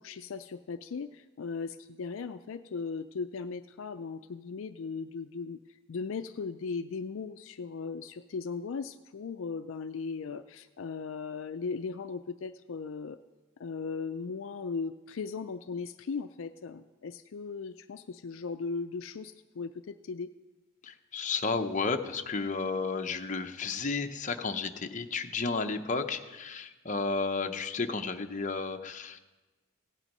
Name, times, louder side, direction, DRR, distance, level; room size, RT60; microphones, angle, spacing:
voice 1, 0.0-5.6 5.9-13.2 13.6-20.3, left 5 dB, 70° left, 10 dB, 0.4 m, -37 dB
voice 2, 20.8-29.2, left 4 dB, 35° left, 6 dB, 0.7 m, -32 dB
16.5 x 9.1 x 5.3 m, 1.2 s
head